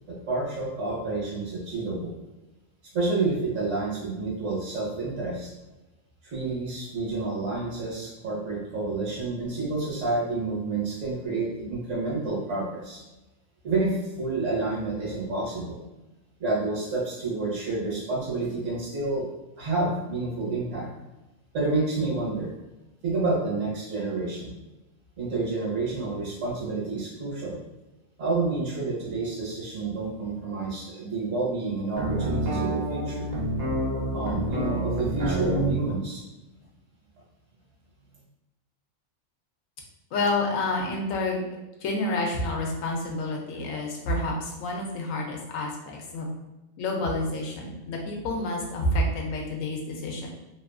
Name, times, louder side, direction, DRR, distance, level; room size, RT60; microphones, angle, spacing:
voice 1, 0.1-2.1 2.9-5.5 6.2-13.0 13.6-15.8 16.4-19.3 19.6-20.9 21.5-22.5 23.0-24.5 25.2-27.6 28.2-33.3 34.1-36.2, right 3 dB, 65° right, -5 dB, 1.3 m, -29 dB
sound 1, 31.9-35.8, right 1 dB, 45° right, 0.6 m, -28 dB
voice 2, 40.1-41.4 41.8-46.3 46.8-50.3, left 2 dB, 75° left, 0 dB, 1.0 m, -29 dB
2.9 x 2.4 x 2.3 m, 1.0 s
omnidirectional pair, 1.4 m